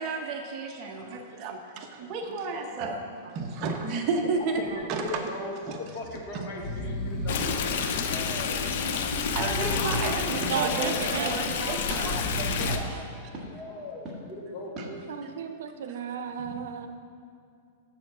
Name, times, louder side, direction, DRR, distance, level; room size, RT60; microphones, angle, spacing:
voice 1, 0.0-3.0 3.3-4.6 4.9-5.2 5.7-5.8 6.3-6.5 9.3-13.0 14.8-14.9 15.9-16.0, right 4 dB, 35° right, 3 dB, 0.9 m, -32 dB
Breathing, 4.4-4.7 5.1-5.2 6.0-6.2 6.5-7.5 8.1-8.7 9.2-10.2 10.8-11.4 11.9-12.9 13.5-14.2, left 1 dB, 20° left, 1.0 m, -35 dB
voice 2, 4.5-8.3 9.6-15.0 16.3-16.8, left 2 dB, 40° left, 0 dB, 1.5 m, -40 dB
Stream, 7.3-12.8, left 6 dB, 60° left, 0.7 m, -29 dB
sound 1, 9.6-11.3 11.9-12.0 12.6-12.7 13.3-13.5 14.0-14.2 14.8-14.9, right 1 dB, 15° right, 1.6 m, -41 dB
voice 3, 10.3-11.4 15.1-16.9, right 7 dB, 75° right, 8 dB, 0.7 m, -33 dB
7.4 x 7.0 x 6.1 m, 2.4 s
supercardioid pair, 160°, 0 cm